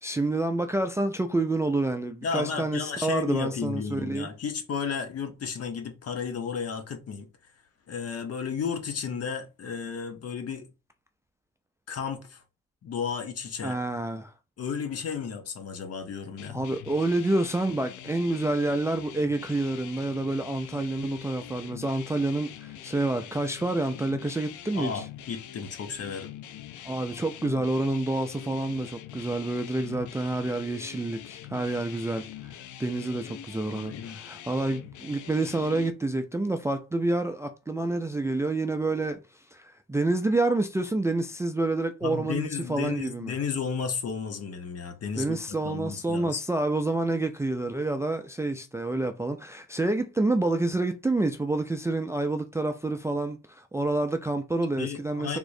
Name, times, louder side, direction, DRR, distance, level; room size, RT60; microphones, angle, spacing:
voice 1, 0.0-4.3 13.6-14.3 16.5-25.1 26.9-32.5 32.8-39.2 39.5-43.3 45.2-55.4, right 2 dB, 10° right, 0.3 m, -28 dB
voice 2, 2.2-7.3 7.9-10.7 11.9-12.4 12.8-13.8 14.6-16.6 24.7-26.3 33.7-34.2 42.0-46.4 54.8-55.4, left 6 dB, 55° left, 1.0 m, -33 dB
sound 1, 16.4-35.9, left 11 dB, 75° left, 0.5 m, -44 dB
3.6 x 3.0 x 2.6 m
cardioid pair, 90°, 30 cm